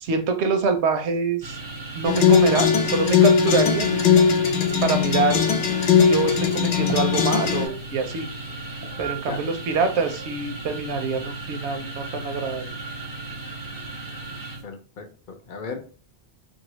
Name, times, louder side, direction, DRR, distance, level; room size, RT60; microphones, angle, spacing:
voice 1, 0.0-1.6 1.9-4.0 4.8-5.4 6.0-8.3 9.0-12.7, right 4 dB, 80° right, 7 dB, 0.9 m, -25 dB
sound 1, 1.4-14.6, right 3 dB, 25° right, 0.5 m, -36 dB
sound 2, 2.1-7.7, left 7 dB, 85° left, 0.9 m, -19 dB
voice 2, 14.6-15.8, left 5 dB, 60° left, 6 dB, 0.6 m, -36 dB
2.7 x 2.7 x 3.0 m, 0.39 s
omnidirectional pair, 1.1 m